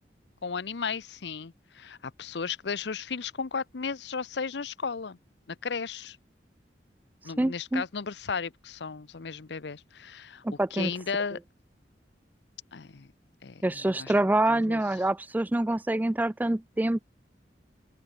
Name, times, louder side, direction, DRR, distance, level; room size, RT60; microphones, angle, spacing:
voice 1, 0.4-5.2 5.5-6.2 7.2-10.4 10.7-11.4 12.7-13.1 13.4-14.1 14.5-14.8, left 5 dB, 75° left, 0.7 m, -35 dB
voice 2, 7.4-7.8 10.4-10.9 13.6-17.0, right 1 dB, 10° right, 0.3 m, -26 dB
open air
head